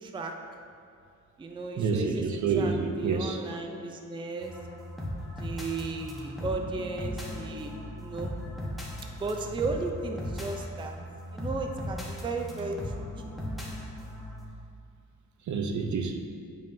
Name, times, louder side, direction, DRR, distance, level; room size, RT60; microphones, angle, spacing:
voice 1, 0.0-0.3 1.4-2.2 2.6-4.5 5.4-8.3 9.2-10.9 11.3-12.9, right 3 dB, 15° right, 3 dB, 0.4 m, -35 dB
voice 2, 1.8-3.4 15.5-16.2, right 5 dB, 65° right, 4 dB, 0.6 m, -28 dB
sound 1, 4.4-14.5, left 1 dB, ahead, 1.0 m, -38 dB
9.0 x 5.3 x 2.6 m, 2.3 s
wide cardioid pair, 140°, 32 cm